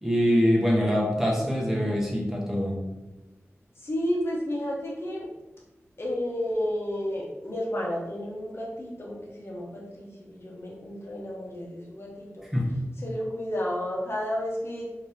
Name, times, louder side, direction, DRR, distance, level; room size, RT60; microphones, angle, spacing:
voice 1, 0.0-2.8 12.5-12.8, equal, 5° right, -3 dB, 1.0 m, -24 dB
voice 2, 3.8-5.3 6.0-12.4 13.0-14.9, equal, 55° left, -3 dB, 1.1 m, -31 dB
4.2 x 2.9 x 3.4 m, 1.0 s
wide cardioid pair, 70°, 5 cm